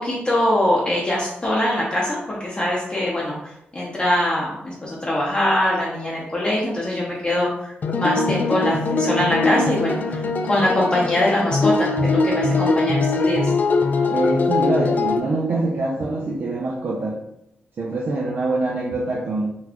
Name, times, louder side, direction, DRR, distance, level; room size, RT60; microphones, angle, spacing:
voice 1, 0.0-3.4 3.7-10.2 10.5-13.5, left 1 dB, 25° left, -5 dB, 0.7 m, -22 dB
sound 1, 7.8-15.2, left 3 dB, 50° left, 0.3 m, -21 dB
voice 2, 14.0-17.2 17.8-19.6, right 2 dB, 60° right, -3 dB, 0.5 m, -24 dB
4.0 x 2.4 x 2.9 m, 0.79 s
wide cardioid pair, 120°, 4 cm